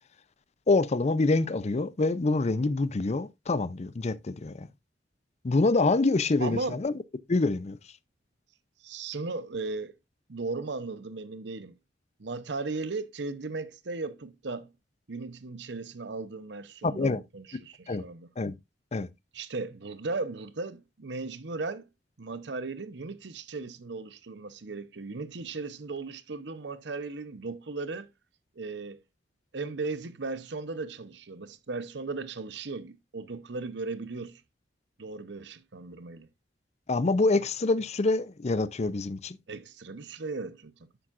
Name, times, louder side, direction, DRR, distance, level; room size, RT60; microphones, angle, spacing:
voice 1, 0.7-4.7 5.4-7.0 7.3-7.8 16.8-17.2 17.9-18.0 18.4-18.5 18.9-19.1 36.9-39.4, left 3 dB, 40° left, 0.5 m, -26 dB
voice 2, 6.4-6.8 8.8-9.9 10.3-11.7 12.2-14.7 15.1-18.3 19.3-21.8 22.2-28.1 28.6-29.0 29.5-34.4 35.0-36.3 39.5-40.9, right 3 dB, 70° right, 0.8 m, -36 dB
10.0 x 7.4 x 2.5 m
head